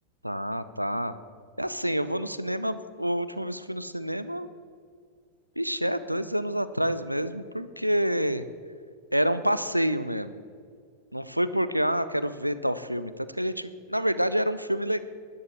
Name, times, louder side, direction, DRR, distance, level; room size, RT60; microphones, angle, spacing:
voice 1, 0.2-1.1 1.6-4.5 5.6-8.5 9.1-10.3 11.1-15.0, equal, 90° right, 14 dB, 0.5 m, -28 dB
12.5 x 11.0 x 7.8 m, 2.1 s
figure-of-eight pair, 90°, 0 cm